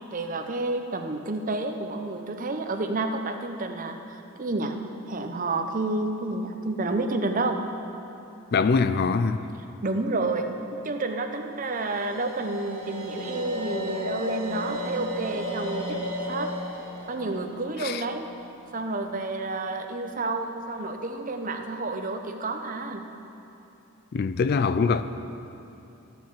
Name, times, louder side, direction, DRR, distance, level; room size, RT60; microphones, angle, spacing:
voice 1, 0.1-4.8 5.1-7.6 9.8-16.0 16.3-16.5 17.1-18.3 18.7-23.0, right 2 dB, 35° right, 6 dB, 0.7 m, -30 dB
voice 2, 8.5-9.4 17.8-18.0 24.1-25.0, left 4 dB, 45° left, 12 dB, 0.3 m, -23 dB
sound 1, 11.6-18.7, left 1 dB, 70° right, 3.0 m, -34 dB
13.5 x 7.5 x 7.3 m, 2.8 s
head